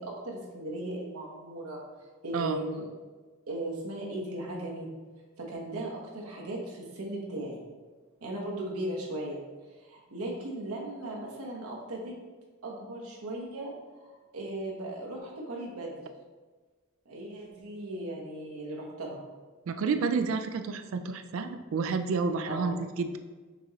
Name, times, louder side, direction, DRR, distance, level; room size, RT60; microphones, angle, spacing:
voice 1, 0.0-1.8 2.2-2.8 3.5-4.9 5.4-7.6 8.2-9.4 9.8-12.1 12.6-13.7 14.0-15.9 17.0-19.2 22.5-22.8, right 1 dB, 90° right, -2 dB, 1.1 m, -37 dB
voice 2, 19.7-23.2, right 4 dB, 65° right, 8 dB, 0.4 m, -30 dB
6.0 x 2.8 x 3.0 m, 1.3 s
head